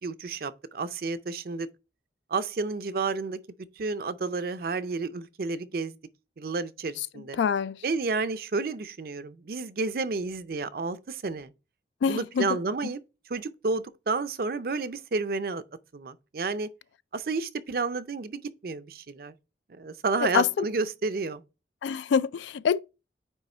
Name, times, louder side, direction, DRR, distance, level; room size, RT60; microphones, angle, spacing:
voice 1, 0.0-1.7 2.3-3.4 3.8-6.0 6.4-7.4 7.8-11.5 12.1-13.0 13.3-15.6 15.9-16.7 17.1-19.3 19.7-21.4, right 4 dB, 55° right, 0.5 m, -31 dB
voice 2, 7.4-7.8 12.0-12.6 20.2-20.7 21.8-22.8, left 7 dB, 80° left, 0.3 m, -25 dB
9.1 x 3.1 x 4.3 m
head